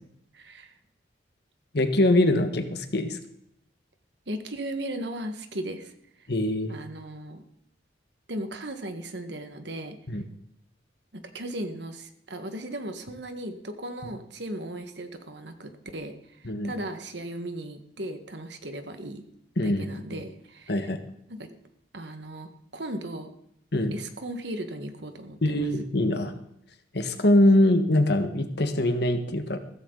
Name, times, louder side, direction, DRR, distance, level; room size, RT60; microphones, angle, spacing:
voice 1, 0.3-0.7 4.3-5.9 6.7-7.4 8.3-10.0 11.1-16.1 16.4-19.2 19.6-20.7 21.4-21.5 21.9-23.3 23.9-25.7, right 1 dB, 65° right, 7 dB, 1.6 m, -36 dB
voice 2, 1.7-3.2 6.3-6.8 10.1-10.2 16.4-16.7 19.6-19.9 20.7-21.0 23.7-23.9 25.4-26.3 26.9-29.6, left 1 dB, 55° left, 8 dB, 1.5 m, -23 dB
15.5 x 14.0 x 4.0 m, 0.74 s
head